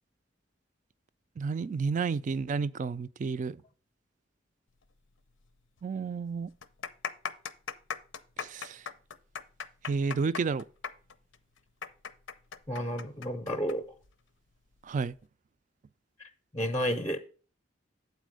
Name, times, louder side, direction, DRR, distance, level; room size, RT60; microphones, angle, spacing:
voice 1, 1.4-3.6 5.8-6.5 8.4-8.8 9.9-10.6 14.8-15.1, right 5 dB, 40° right, 0.3 m, -31 dB
sound 1, 5.4-5.5 5.8-5.9 6.5-13.8 14.0-14.1 14.9-15.2, left 6 dB, 90° left, 0.6 m, -38 dB
voice 2, 12.7-13.8 16.2-17.2, equal, 15° left, 0.6 m, -32 dB
8.2 x 4.2 x 6.3 m
head